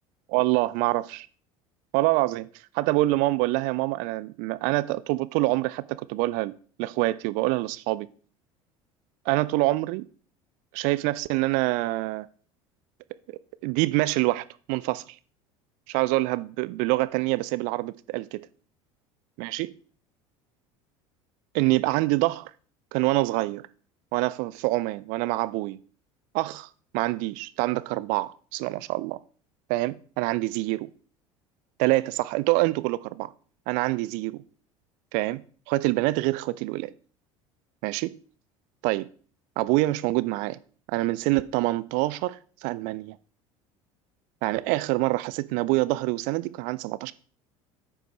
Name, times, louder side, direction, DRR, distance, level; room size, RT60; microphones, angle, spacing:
voice 1, 0.3-1.3 1.9-2.5 2.7-6.5 6.8-8.1 9.3-10.1 10.7-12.3 13.6-15.0 15.9-18.5 19.4-19.7 21.5-22.5 22.9-23.6 24.1-25.8 26.3-26.7 26.9-29.2 29.7-30.8 31.8-33.3 33.7-34.4 35.1-36.9 37.8-38.2 38.8-39.1 39.6-40.6 40.9-43.1 44.4-47.1, right 20 dB, 50° right, 0.4 m, -26 dB
9.1 x 5.3 x 3.3 m
figure-of-eight pair, 65°, 17 cm